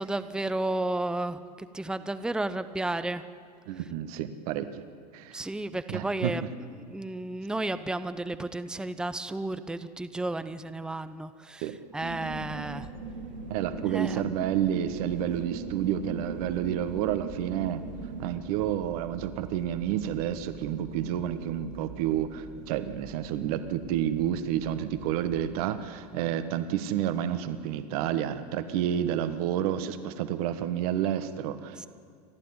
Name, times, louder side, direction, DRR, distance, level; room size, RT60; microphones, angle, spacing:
voice 1, 0.0-3.2 5.3-6.4 6.9-12.9 13.9-14.2 31.8-31.9, right 2 dB, 5° right, 11 dB, 0.8 m, -32 dB
voice 2, 3.7-4.8 5.1-5.4 5.9-6.4 11.6-11.8 13.5-17.8 18.2-31.9, right 10 dB, 60° right, 11 dB, 1.5 m, -30 dB
sound 1, 12.0-18.3, right 4 dB, 90° right, 3.1 m, -39 dB
sound 2, 15.1-25.7, right 7 dB, 30° right, 2.8 m, -49 dB
29.5 x 12.0 x 9.6 m, 2.2 s
hypercardioid pair, 95°, 21 cm